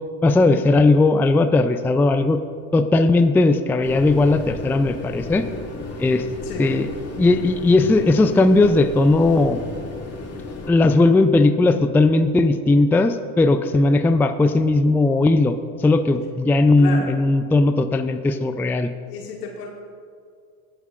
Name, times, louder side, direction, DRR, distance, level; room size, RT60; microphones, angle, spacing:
voice 1, 0.2-2.4 2.7-5.5 6.0-6.2 6.6-6.9 7.2-9.6 10.7-18.9, left 2 dB, 5° left, 9 dB, 0.4 m, -17 dB
sound 1, 3.8-10.7, left 3 dB, 30° left, 2.5 m, -34 dB
voice 2, 6.4-6.8 16.8-17.1 19.1-19.7, left 5 dB, 80° left, -1 dB, 2.2 m, -32 dB
23.5 x 8.0 x 2.5 m, 2.2 s
hypercardioid pair, 75°, 45 cm